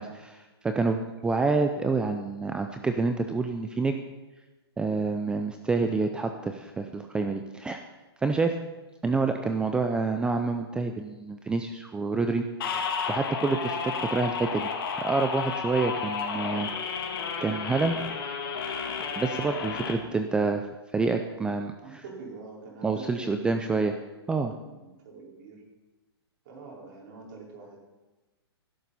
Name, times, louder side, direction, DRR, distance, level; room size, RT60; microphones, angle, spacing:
voice 1, 0.0-4.0 4.8-7.8 8.2-8.6 9.0-12.8 13.1-14.7 15.0-17.0 17.4-18.0 19.2-20.6 20.9-22.0 22.8-24.0 24.3-24.5, right 3 dB, 5° right, 6 dB, 0.5 m, -28 dB
sound 1, 12.6-19.9, left 5 dB, 55° left, 2.5 m, -32 dB
voice 2, 21.8-23.8 24.3-25.6 26.4-27.8, right 3 dB, 45° right, -2 dB, 4.7 m, -45 dB
18.0 x 11.5 x 4.2 m, 1.1 s
hypercardioid pair, 140°, 14 cm